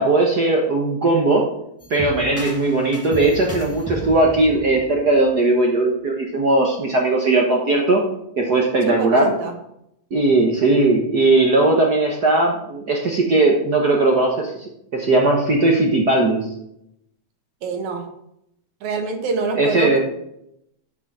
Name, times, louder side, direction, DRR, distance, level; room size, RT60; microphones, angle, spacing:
voice 1, 0.0-1.5 1.9-8.0 8.4-9.3 10.1-16.5 19.6-20.0, right 2 dB, 50° right, 0 dB, 1.1 m, -18 dB
sound 1, 1.8-5.7, equal, 10° left, 0.7 m, -35 dB
voice 2, 8.9-9.5 17.6-18.1 18.8-20.0, right 4 dB, 70° right, 5 dB, 2.7 m, -26 dB
7.8 x 7.0 x 7.3 m, 0.77 s
omnidirectional pair, 3.5 m